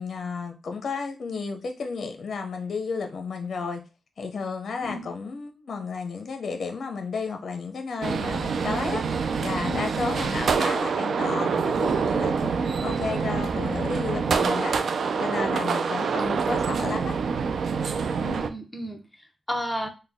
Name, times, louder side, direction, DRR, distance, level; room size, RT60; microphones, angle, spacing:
voice 1, 0.0-3.8 4.2-14.7 15.2-17.2, left 4 dB, 60° left, 0.6 m, -32 dB
sound 1, 8.0-18.5, right 5 dB, 70° right, 0.4 m, -26 dB
voice 2, 18.2-19.0 19.5-19.9, equal, 5° left, 0.9 m, -33 dB
4.1 x 2.2 x 3.4 m
cardioid pair, 80°, 0 cm